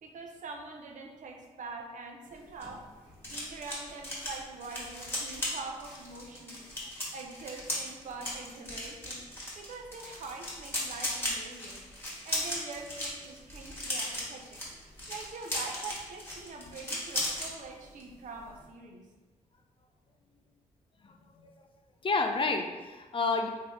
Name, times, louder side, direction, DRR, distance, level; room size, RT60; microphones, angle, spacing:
voice 1, 0.0-2.9 3.2-6.6 7.1-9.3 9.6-11.8 12.2-14.6 15.1-19.1, right 3 dB, 65° right, 2 dB, 0.6 m, -44 dB
sound 1, 2.3-17.5 17.8-18.1 18.4-18.6, left 1 dB, 15° left, 1.5 m, -37 dB
voice 2, 21.0-21.5 22.0-23.5, left 3 dB, 40° left, 4 dB, 0.5 m, -30 dB
3.3 x 2.8 x 3.5 m, 1.2 s
cardioid pair, 65°, 14 cm